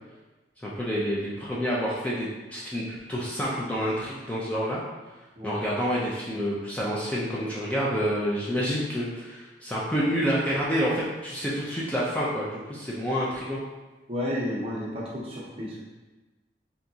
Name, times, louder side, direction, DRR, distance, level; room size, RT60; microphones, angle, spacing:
voice 1, 0.6-4.8 5.4-13.6, equal, 10° left, -6 dB, 0.4 m, -28 dB
voice 2, 14.1-15.8, left 1 dB, 35° right, -5 dB, 0.7 m, -32 dB
3.4 x 2.7 x 2.7 m, 1.2 s
head